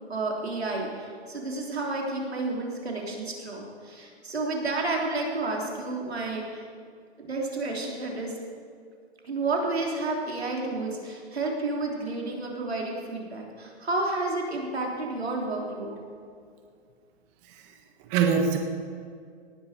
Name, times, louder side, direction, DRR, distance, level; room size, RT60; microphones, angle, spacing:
voice 1, 0.1-6.6 7.2-8.4 9.2-15.9, right 2 dB, 85° right, -1 dB, 3.6 m, -31 dB
voice 2, 17.4-17.7 18.0-18.6, right 6 dB, 35° right, 4 dB, 1.4 m, -24 dB
18.5 x 11.5 x 5.2 m, 2.2 s
hypercardioid pair, 125°, 31 cm